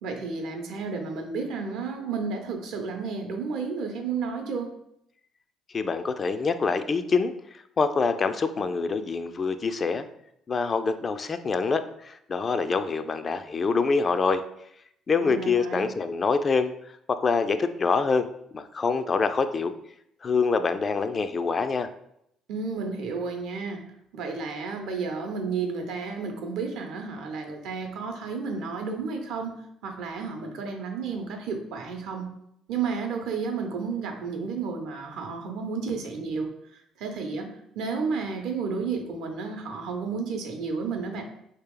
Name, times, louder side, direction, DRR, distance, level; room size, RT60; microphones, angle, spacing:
voice 1, 0.0-4.7 15.2-15.8 22.5-23.8 24.1-29.5 29.8-32.3 32.7-36.5 37.0-37.5 37.7-41.2, right 5 dB, 70° right, 4 dB, 0.7 m, -32 dB
voice 2, 5.7-10.1 10.5-14.4 15.1-16.7 17.1-18.3 18.5-19.7 20.2-21.9, left 4 dB, 40° left, 10 dB, 0.3 m, -25 dB
2.9 x 2.9 x 3.7 m, 0.75 s
hypercardioid pair, 55°, 0 cm